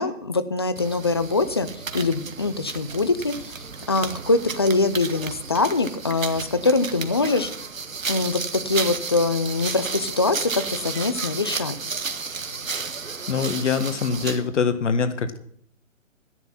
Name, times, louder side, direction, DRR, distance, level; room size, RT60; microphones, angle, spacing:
voice 1, 0.0-1.7 1.9-7.5 8.1-11.8, left 3 dB, 20° left, 13 dB, 0.4 m, -23 dB
sound 1, 0.8-14.5, right 5 dB, 80° right, 1.5 m, -33 dB
voice 2, 13.3-15.4, left 5 dB, 65° left, 10 dB, 1.6 m, -24 dB
13.0 x 10.5 x 5.7 m, 0.65 s
figure-of-eight pair, 140°, 39 cm